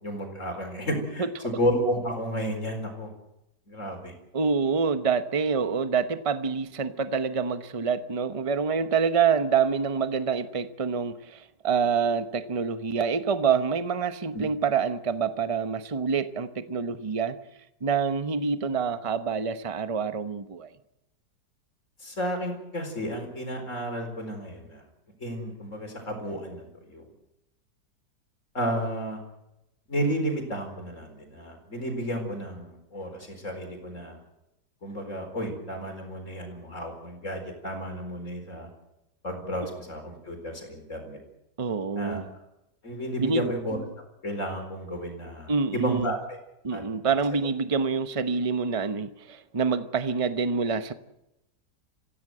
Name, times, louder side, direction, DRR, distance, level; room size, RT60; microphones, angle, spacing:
voice 1, 0.0-3.1 3.7-4.1 14.3-14.4 22.0-24.8 25.2-27.1 28.5-29.2 29.9-34.2 34.8-38.7 39.2-41.2 41.9-42.2 42.8-43.8 44.2-46.4 46.7-46.8, equal, 45° left, 4.7 m, -32 dB
voice 2, 4.3-17.4 17.8-20.7 41.6-42.2 43.2-43.5 45.5-46.1 46.6-50.9, right 5 dB, 25° right, 0.8 m, -26 dB
25.5 x 16.0 x 7.8 m
omnidirectional pair, 1.8 m